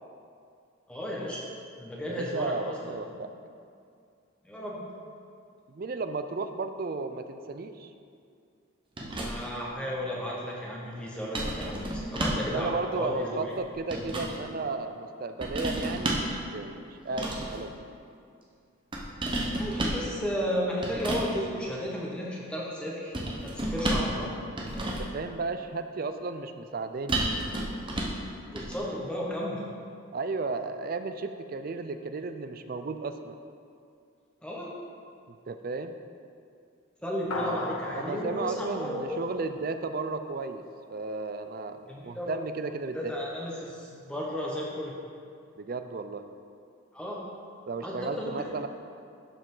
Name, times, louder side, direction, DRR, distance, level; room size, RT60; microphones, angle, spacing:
voice 1, 0.9-1.4 1.8-3.2 4.4-4.9 9.2-13.5 19.6-23.2 23.4-24.3 28.5-29.6 34.4-34.7 37.0-39.2 41.9-42.3 42.9-44.9 46.9-47.2 47.8-48.5, equal, 5° left, -4 dB, 1.1 m, -34 dB
voice 2, 2.1-3.3 5.7-7.9 12.5-17.8 24.8-27.2 30.1-33.4 35.3-35.9 38.0-40.6 40.9-43.1 45.6-46.3 47.6-48.7, right 3 dB, 45° right, 9 dB, 0.4 m, -34 dB
sound 1, 9.0-9.6 11.3-12.5 13.5-14.4 15.4-16.4 17.1-17.6 18.9-20.1 20.8-21.3 23.1-24.2 24.5-25.2 27.1-28.2 28.6-28.8, right 1 dB, 25° right, 0.8 m, -31 dB
sound 2, 37.3-40.0, left 2 dB, 85° left, 1.0 m, -38 dB
11.5 x 5.0 x 3.8 m, 2.4 s
head